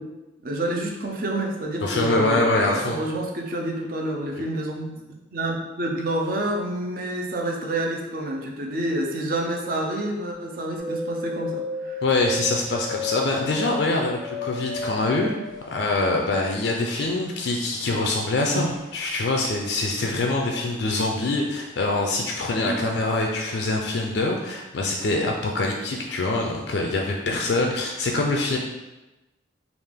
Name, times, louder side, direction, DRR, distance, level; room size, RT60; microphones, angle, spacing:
voice 1, 0.4-5.0 5.3-12.0 18.5-18.7 22.6-22.9, right 1 dB, 45° right, 0 dB, 0.5 m, -28 dB
voice 2, 1.8-3.0 12.0-15.4 15.7-28.6, left 2 dB, 60° left, 0 dB, 0.4 m, -24 dB
sound 1, 10.8-20.2 20.4-21.3 21.7-22.6 23.0-23.1, left 2 dB, 80° right, 1.4 m, -34 dB
3.3 x 2.4 x 3.5 m, 1.1 s
head